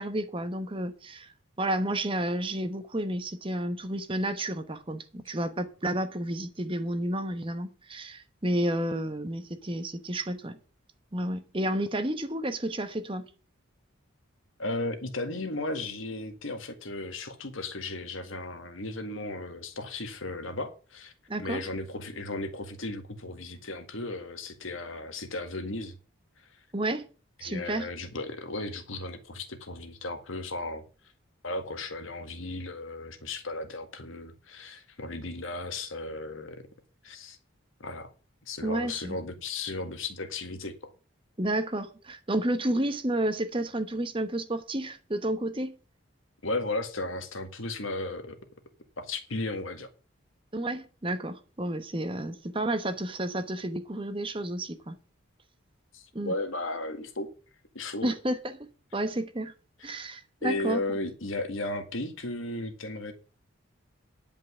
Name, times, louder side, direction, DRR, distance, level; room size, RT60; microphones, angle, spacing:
voice 1, 0.0-1.3 1.6-10.6 11.1-13.3 21.3-21.6 26.7-27.1 27.4-27.9 38.6-39.2 41.4-45.8 50.5-55.0 56.1-56.3 58.0-59.5 59.8-60.8, right 1 dB, 25° right, 1.1 m, -31 dB
voice 2, 14.6-21.1 21.4-25.9 27.4-30.8 31.4-36.6 37.0-37.4 37.8-38.1 38.5-40.9 46.4-48.4 49.0-49.9 55.9-57.3 57.7-58.1 59.8-60.0 60.4-63.1, left 2 dB, 75° left, 1.9 m, -35 dB
10.5 x 5.5 x 8.4 m
head